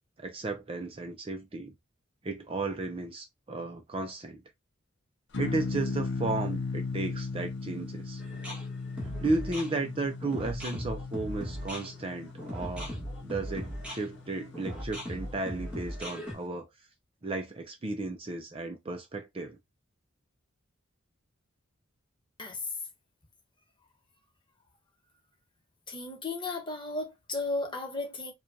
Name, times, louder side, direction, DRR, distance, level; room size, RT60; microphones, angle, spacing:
voice 1, 0.2-1.7 2.2-4.4 5.4-8.2 9.2-12.9 13.2-16.7 17.2-19.6, right 2 dB, 25° right, 0.5 m, -34 dB
sound 1, 5.3-15.9, left 3 dB, 60° left, 0.6 m, -38 dB
sound 2, 8.2-16.3, equal, 5° right, 1.5 m, -39 dB
voice 2, 25.9-28.3, left 2 dB, 25° left, 1.1 m, -34 dB
4.8 x 2.3 x 2.7 m
head